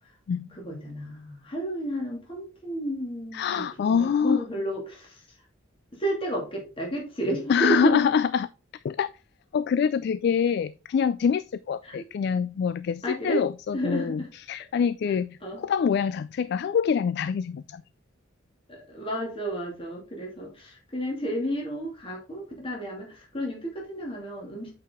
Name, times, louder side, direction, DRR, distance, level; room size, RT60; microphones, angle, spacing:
voice 1, 0.5-5.4 5.9-8.0 11.8-12.0 13.0-13.4 13.7-14.3 15.1-15.2 15.4-15.6 18.7-24.7, right 1 dB, 30° left, 2.4 m, -32 dB
voice 2, 3.3-4.4 7.5-8.5 8.8-9.1 9.5-14.2 14.5-17.8, left 7 dB, 60° left, 0.3 m, -25 dB
8.2 x 4.8 x 3.6 m
head